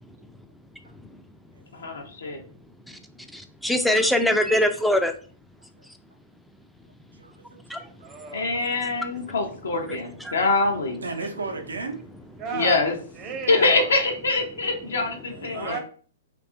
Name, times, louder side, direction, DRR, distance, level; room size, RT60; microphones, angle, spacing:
voice 1, 1.7-2.4 8.3-11.0 12.5-12.9 13.5-15.8, left 3 dB, 75° left, 0.5 m, -24 dB
voice 2, 3.3-5.1 7.7-7.8 10.2-10.3 15.5-15.6, left 1 dB, ahead, 0.3 m, -22 dB
voice 3, 7.1-7.9 9.3-9.4 10.0-10.2 11.0-12.0 15.3-15.8, right 3 dB, 80° right, 0.5 m, -35 dB
voice 4, 8.0-8.8 12.4-14.0 15.5-15.8, right 5 dB, 30° right, 0.6 m, -35 dB
2.6 x 2.3 x 2.5 m
figure-of-eight pair, 110°, 0 cm